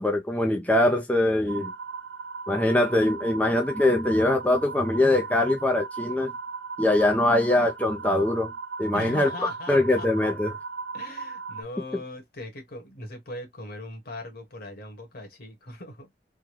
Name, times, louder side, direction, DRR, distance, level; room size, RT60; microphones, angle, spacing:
voice 1, 0.0-1.7 2.5-6.3 6.8-8.5 8.8-10.6, left 1 dB, 10° left, 0.5 m, -23 dB
sound 1, 1.5-11.6, right 5 dB, 75° right, 0.6 m, -37 dB
voice 2, 8.9-10.1 10.9-16.1, left 2 dB, 60° left, 1.4 m, -39 dB
3.7 x 2.2 x 3.1 m
head